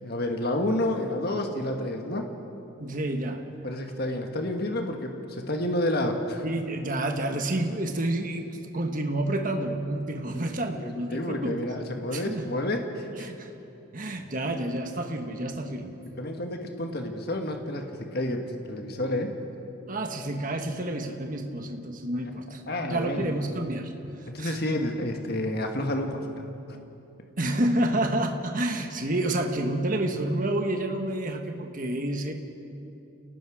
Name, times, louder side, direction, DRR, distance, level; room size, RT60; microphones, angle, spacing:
voice 1, 0.0-2.3 3.6-6.4 10.3-10.8 11.1-13.3 16.0-19.3 22.7-23.4 24.3-26.3, left 1 dB, 50° left, 3 dB, 1.6 m, -30 dB
voice 2, 2.8-3.4 6.4-11.6 12.1-12.5 13.2-13.5 13.9-15.9 19.9-23.9 24.4-24.7 27.4-32.3, right 1 dB, 40° right, 4 dB, 1.5 m, -29 dB
28.5 x 18.5 x 5.0 m, 2.8 s
head